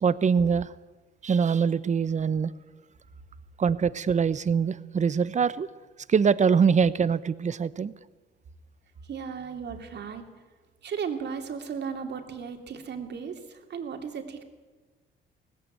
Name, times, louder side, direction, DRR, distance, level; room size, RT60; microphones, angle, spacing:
voice 1, 0.0-0.7 1.2-2.5 3.6-5.7 6.1-7.9, right 6 dB, 35° right, 17 dB, 0.8 m, -23 dB
voice 2, 9.1-10.2 10.8-14.4, right 6 dB, 60° right, 5 dB, 2.7 m, -35 dB
18.5 x 15.5 x 9.1 m, 1.3 s
cardioid pair, 90°, 20 cm